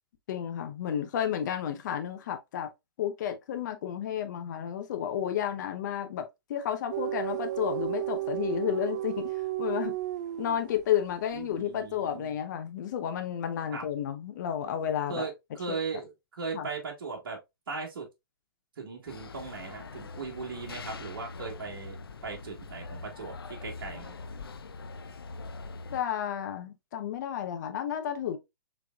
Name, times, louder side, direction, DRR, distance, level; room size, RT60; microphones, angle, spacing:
voice 1, 0.3-2.7 3.0-10.0 10.4-15.2 16.5-16.7 25.9-28.4, left 9 dB, 50° left, 0.9 m, -32 dB
sound 1, 6.9-10.9, right 15 dB, 50° right, 0.3 m, -33 dB
voice 2, 11.3-12.3 13.7-13.8 15.1-17.4 17.7-18.1 18.8-21.9 22.2-23.3 23.6-24.2, right 4 dB, 65° right, 1.4 m, -38 dB
sound 2, 19.1-26.0, left 4 dB, 80° left, 0.5 m, -43 dB
5.0 x 3.4 x 2.3 m
hypercardioid pair, 125°, 12 cm